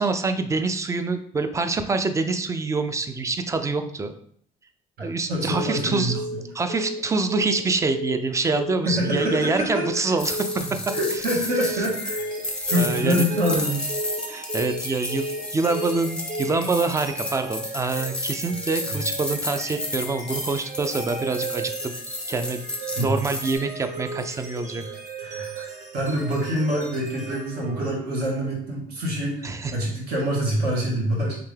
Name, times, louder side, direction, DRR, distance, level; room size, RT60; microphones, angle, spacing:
voice 1, 0.0-4.1 5.0-6.2 6.5-11.2 11.6-11.9 12.8-13.2 14.3-22.0 22.3-22.6 23.0-24.8 29.4-29.7, right 3 dB, 20° right, 9 dB, 0.3 m, -26 dB
voice 2, 5.0-6.4 8.8-10.0 10.9-12.2 12.7-13.9 22.9-23.1 25.2-25.7 25.9-31.4, equal, 70° right, -2 dB, 1.5 m, -26 dB
Telephone, 5.5-5.8 6.1-6.4 6.7-7.0 7.3-7.6 7.9-8.2 8.5-8.8 9.1-9.4 9.7-10.0 10.3-10.6 10.9-11.2 11.5-11.8 12.1-12.4 12.7-13.0 13.3-13.6 13.9-14.2 14.5-14.8 15.1-15.4 15.7-16.0 16.3-16.6, equal, 90° right, 1.0 m, -31 dB
sound 1, 10.2-23.6, left 1 dB, 5° left, 0.7 m, -32 dB
sound 2, 11.6-28.2, right 4 dB, 50° right, 0.8 m, -38 dB
3.4 x 2.8 x 3.2 m, 0.64 s
cardioid pair, 110°, 17 cm